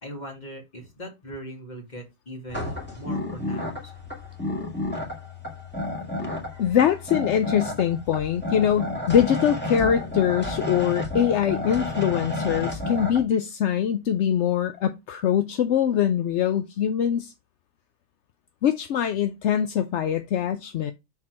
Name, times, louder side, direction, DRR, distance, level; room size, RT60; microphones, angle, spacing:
voice 1, 0.0-3.9 6.3-6.8, equal, 40° left, 2.2 m, -40 dB
sound 1, 2.5-13.2, left 2 dB, 10° left, 1.8 m, -31 dB
voice 2, 6.6-17.3 18.6-20.9, left 9 dB, 75° left, 0.9 m, -23 dB
6.0 x 4.5 x 4.5 m
omnidirectional pair, 1.2 m